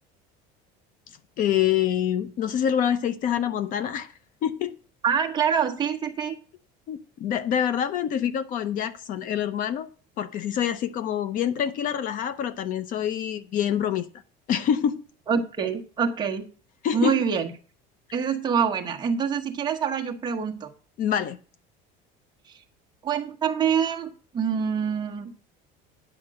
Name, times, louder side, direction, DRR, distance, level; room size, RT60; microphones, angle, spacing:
voice 1, 1.4-4.1 4.4-4.7 6.9-9.9 10.2-14.1 14.5-15.0 16.8-17.2 21.0-21.4, left 9 dB, 45° left, 0.7 m, -26 dB
voice 2, 5.0-6.4 15.3-16.5 16.9-17.5 18.1-20.7 23.0-25.3, right 7 dB, 20° right, 1.2 m, -25 dB
9.7 x 5.2 x 7.7 m
cardioid pair, 170°, 20 cm